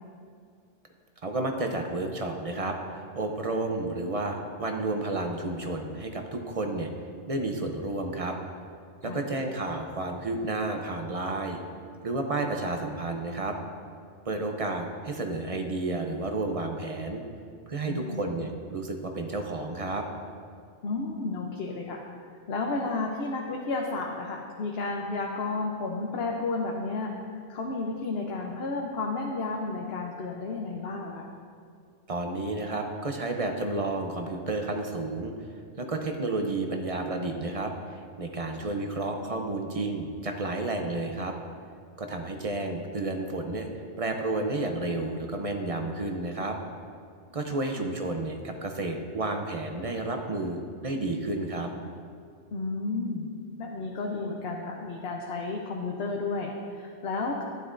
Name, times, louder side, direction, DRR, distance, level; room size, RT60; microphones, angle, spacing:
voice 1, 1.2-6.9 7.3-8.4 9.0-11.6 12.0-13.6 14.3-17.2 17.7-20.0 32.1-35.5 35.8-41.3 42.0-43.7 44.0-46.6 47.3-51.7, right 2 dB, 40° right, 4 dB, 0.6 m, -31 dB
voice 2, 17.9-18.3 20.8-22.0 22.3-31.3 47.5-47.9 52.5-53.3 53.6-57.4, left 3 dB, 60° left, 0 dB, 0.9 m, -32 dB
11.5 x 9.6 x 2.5 m, 2.3 s
omnidirectional pair, 1.2 m